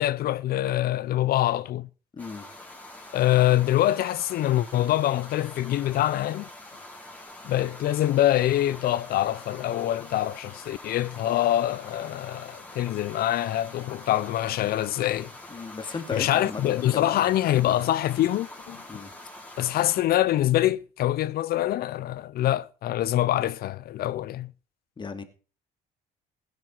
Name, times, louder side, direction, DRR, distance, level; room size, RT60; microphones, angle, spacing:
voice 1, 0.0-1.9 3.1-6.5 7.4-15.3 16.1-19.0 19.6-24.5, left 13 dB, 65° left, 0.6 m, -25 dB
voice 2, 2.1-2.5 15.5-17.3 18.9-19.1 25.0-25.2, left 4 dB, 30° left, 2.4 m, -35 dB
sound 1, 2.2-20.0, left 1 dB, 10° left, 3.8 m, -45 dB
16.5 x 9.9 x 4.5 m
cardioid pair, 110°, 17 cm